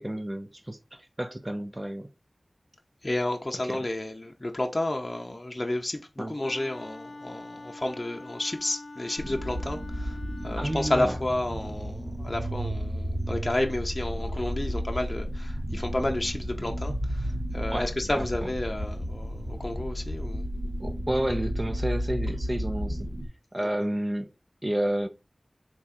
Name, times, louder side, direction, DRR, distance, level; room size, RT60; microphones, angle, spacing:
voice 1, 0.0-2.1 3.7-3.9 6.2-6.4 10.6-11.2 17.7-18.5 20.8-23.1 23.5-24.3 24.6-25.1, right 1 dB, 25° right, 0.6 m, -31 dB
voice 2, 3.0-10.2 10.4-20.4 23.6-23.7, left 1 dB, 40° left, 0.6 m, -31 dB
Wind instrument woodwind instrument, 6.4-11.2, left 2 dB, 75° left, 0.6 m, -44 dB
sound 1, 9.2-23.3, equal, 70° right, 2.1 m, -32 dB
3.5 x 3.0 x 4.2 m
wide cardioid pair, 50°, 0 cm